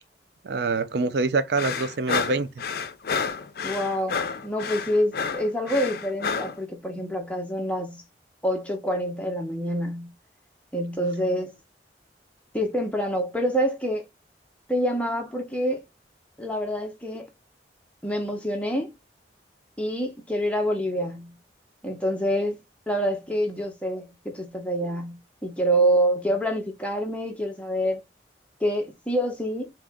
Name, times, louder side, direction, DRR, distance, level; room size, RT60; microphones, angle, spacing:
voice 1, 0.4-2.5, right 3 dB, 65° right, 0.4 m, -25 dB
sound 1, 1.6-6.6, left 5 dB, 55° left, 0.5 m, -30 dB
voice 2, 3.6-8.0 8.4-10.1 10.7-11.5 12.5-14.0 14.7-15.8 16.4-17.3 18.0-18.9 19.8-21.4 21.8-28.0 28.6-29.7, equal, 5° left, 0.8 m, -27 dB
3.6 x 2.9 x 3.5 m
head